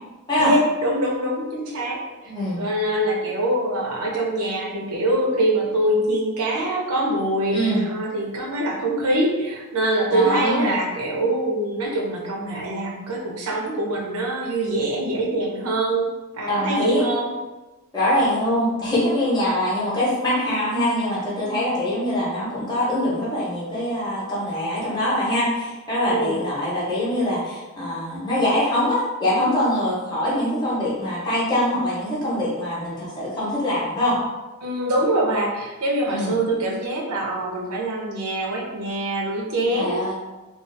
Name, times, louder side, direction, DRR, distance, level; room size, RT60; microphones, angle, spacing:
voice 1, 0.4-2.0 2.5-16.1 16.3-17.3 26.0-26.4 34.6-40.0, right 1 dB, 90° right, -1 dB, 0.6 m, -24 dB
voice 2, 2.2-2.6 7.5-7.8 10.1-10.7 16.5-17.1 17.9-34.2 36.1-36.3 39.7-40.1, left 1 dB, 20° left, -8 dB, 0.6 m, -23 dB
2.3 x 2.3 x 2.5 m, 1.1 s
head